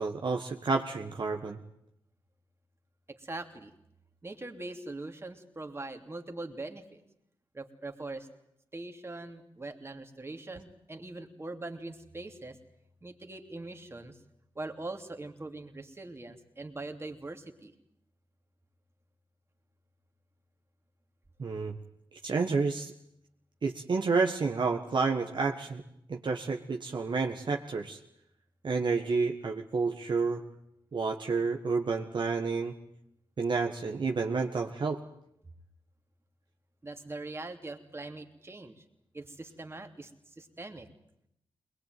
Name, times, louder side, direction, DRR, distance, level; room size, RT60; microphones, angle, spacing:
voice 1, 0.0-1.6 21.4-21.8 22.2-22.9 23.6-25.8 26.1-28.0 28.6-30.4 30.9-32.7 33.4-35.0, right 4 dB, 55° right, 2 dB, 1.6 m, -30 dB
voice 2, 3.1-3.7 4.2-7.0 7.5-8.3 8.7-12.6 13.0-14.2 14.5-17.7 36.8-38.8 39.1-40.9, right 2 dB, 25° right, 5 dB, 2.9 m, -42 dB
21.5 x 21.0 x 9.3 m, 0.76 s
cardioid pair, 70°, 9 cm